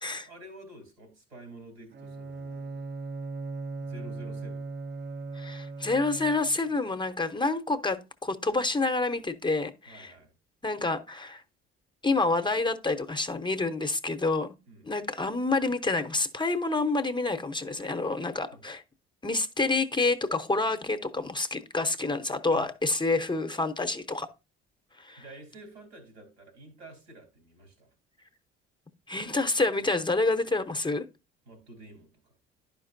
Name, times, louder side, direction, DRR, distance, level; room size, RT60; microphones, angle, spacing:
voice 1, 0.1-2.8 3.8-4.7 9.9-10.3 14.7-14.9 18.5-18.6 22.5-22.7 23.1-23.2 25.1-27.9 31.5-32.3, right 1 dB, 85° right, 3.0 m, -49 dB
Bowed string instrument, 1.9-6.7, right 3 dB, 35° right, 0.6 m, -38 dB
voice 2, 5.3-10.1 10.6-11.4 12.0-14.5 14.8-18.8 19.2-24.3 25.0-25.2 29.1-31.0, left 3 dB, 15° left, 0.8 m, -28 dB
11.0 x 5.2 x 2.6 m
hypercardioid pair, 60°, 30 cm